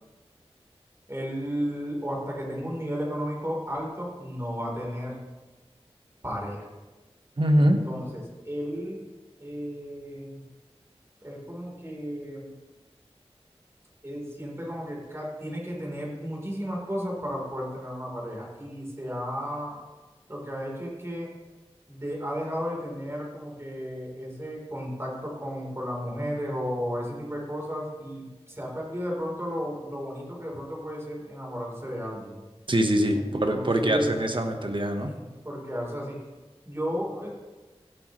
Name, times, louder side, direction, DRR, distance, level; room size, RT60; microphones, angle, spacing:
voice 1, 1.1-5.2 6.2-6.7 7.6-9.0 9.4-10.5 11.2-12.5 14.0-19.8 20.3-21.3 21.9-32.4 33.1-34.2 35.0-36.2 36.6-37.4, equal, 25° right, -3 dB, 3.9 m, -34 dB
voice 2, 7.4-7.8 32.7-35.1, right 1 dB, 50° right, 5 dB, 1.3 m, -23 dB
16.5 x 8.0 x 3.2 m, 1.2 s
wide cardioid pair, 45°, 11 cm